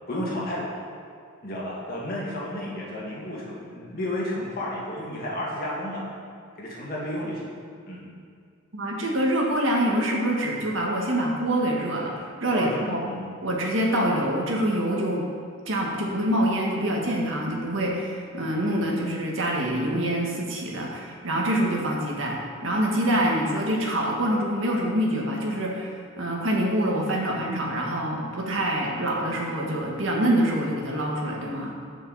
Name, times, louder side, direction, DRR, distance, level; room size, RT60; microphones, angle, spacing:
voice 1, 0.1-0.9 1.4-6.1 6.6-7.5 7.9-8.1 12.5-13.2 18.6-19.2 23.0-23.3, left 1 dB, 45° left, -4 dB, 2.1 m, -32 dB
voice 2, 8.7-13.0 13.4-15.2 15.7-31.7, right 1 dB, 70° right, -1 dB, 1.7 m, -25 dB
15.5 x 5.6 x 4.2 m, 2.2 s
head